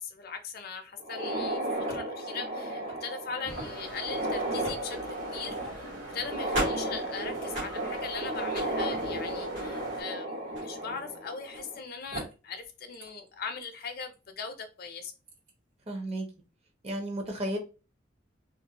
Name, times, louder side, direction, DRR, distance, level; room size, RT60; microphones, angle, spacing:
voice 1, 0.0-1.6 1.9-5.9 6.1-15.1, left 5 dB, 55° left, 0.5 m, -40 dB
sound 1, 1.0-11.8 12.1-12.2 13.0-13.1 13.6-13.7 15.1-15.3, right 1 dB, 85° right, 1.2 m, -34 dB
sound 2, 3.5-10.0, right 1 dB, 55° right, 1.1 m, -44 dB
voice 2, 15.9-16.3 16.8-17.6, right 1 dB, 35° right, 0.6 m, -33 dB
2.4 x 2.1 x 2.8 m
head